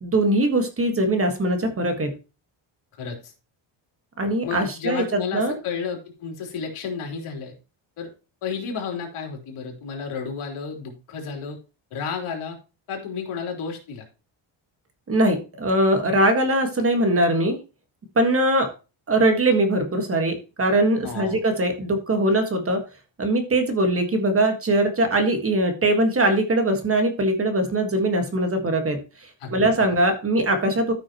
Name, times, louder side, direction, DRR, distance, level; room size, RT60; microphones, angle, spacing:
voice 1, 0.0-2.1 4.2-5.0 5.3-5.6 15.1-17.6 18.1-18.7 19.1-22.8 23.2-29.0 29.5-30.9, right 1 dB, 25° right, 6 dB, 1.6 m, -21 dB
voice 2, 3.0-3.3 4.4-7.5 8.0-8.1 8.4-11.6 11.9-12.6 12.9-14.1 21.0-21.4 29.4-29.7, left 6 dB, 80° left, 1 dB, 3.6 m, -32 dB
13.5 x 6.2 x 3.0 m, 0.31 s
cardioid pair, 170°, 49 cm